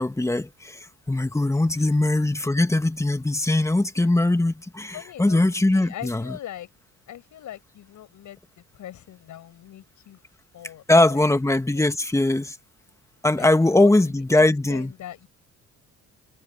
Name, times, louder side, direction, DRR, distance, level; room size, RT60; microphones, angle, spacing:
voice 1, 0.0-6.4 10.9-12.6 13.2-14.9, left 2 dB, 10° left, 1.6 m, -21 dB
voice 2, 4.9-6.7 7.1-10.2 10.5-11.4 11.7-11.9 13.4-13.5 13.8-15.3, left 12 dB, 75° left, 7.9 m, -41 dB
cardioid pair, 90°, 30 cm